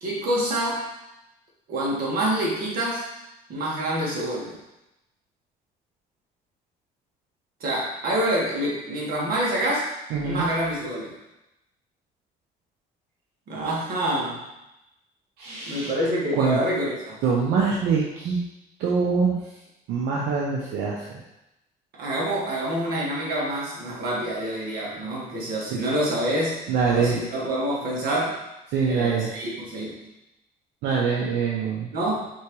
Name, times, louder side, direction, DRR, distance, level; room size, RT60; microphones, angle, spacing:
voice 1, 0.0-0.9 1.7-3.1 3.5-4.5 7.6-9.9 10.2-11.1 13.5-14.4 15.5-17.1 22.0-26.6 26.9-28.4 28.9-29.9 31.9-32.2, right 1 dB, 60° right, -4 dB, 1.6 m, -27 dB
voice 2, 10.1-10.4 15.4-15.9 16.4-16.6 17.2-18.4 18.8-19.4 19.9-21.1 26.7-27.2 28.7-29.3 30.8-31.9, right 5 dB, 85° right, -3 dB, 0.7 m, -24 dB
4.5 x 3.4 x 3.1 m, 0.90 s
cardioid pair, 110°, 17 cm